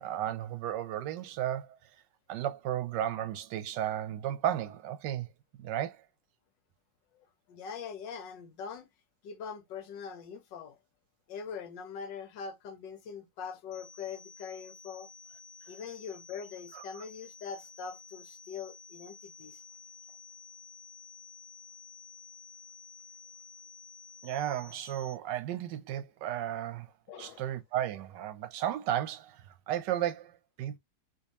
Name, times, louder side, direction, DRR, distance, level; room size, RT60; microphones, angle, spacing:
voice 1, 0.0-1.9 2.3-6.0 16.7-16.8 24.2-26.9 27.2-30.8, right 11 dB, 75° right, 1.2 m, -34 dB
voice 2, 7.1-8.9 9.2-10.8 11.3-15.1 15.7-19.6 27.1-27.4, left 6 dB, 75° left, 1.4 m, -42 dB
sound 1, 13.7-25.1, left 5 dB, 55° left, 0.6 m, -52 dB
3.5 x 2.8 x 2.9 m
omnidirectional pair, 2.0 m